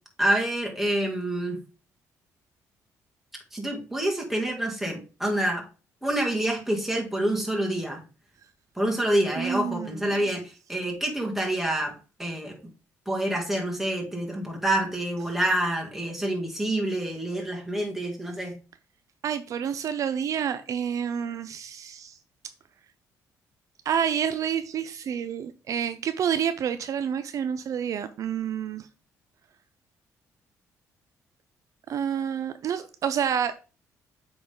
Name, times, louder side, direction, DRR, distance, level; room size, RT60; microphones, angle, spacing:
voice 1, 0.2-1.6 3.5-5.6 6.0-8.0 8.8-11.9 12.2-12.6 13.1-18.6, right 1 dB, 5° right, 0 dB, 2.3 m, -27 dB
voice 2, 9.4-10.2 19.2-22.2 23.9-28.9 31.9-33.5, right 8 dB, 60° right, 10 dB, 0.5 m, -29 dB
7.9 x 4.0 x 3.8 m, 0.35 s
cardioid pair, 90°, 6 cm